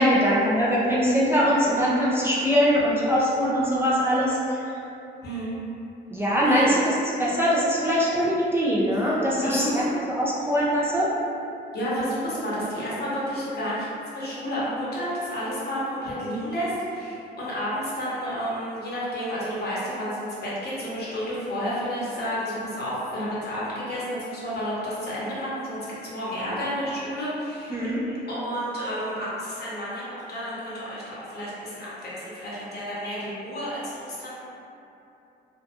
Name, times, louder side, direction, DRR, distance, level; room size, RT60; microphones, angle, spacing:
voice 1, 0.0-4.6 6.1-6.8 7.2-9.8 10.1-11.1 27.7-28.0, equal, 10° right, -8 dB, 0.4 m, -22 dB
voice 2, 5.2-5.5 6.4-6.7 7.8-8.0 9.0-9.8 11.7-27.8 28.3-34.4, equal, 55° left, -8 dB, 0.9 m, -31 dB
2.6 x 2.2 x 2.4 m, 2.8 s
cardioid pair, 90°, 20 cm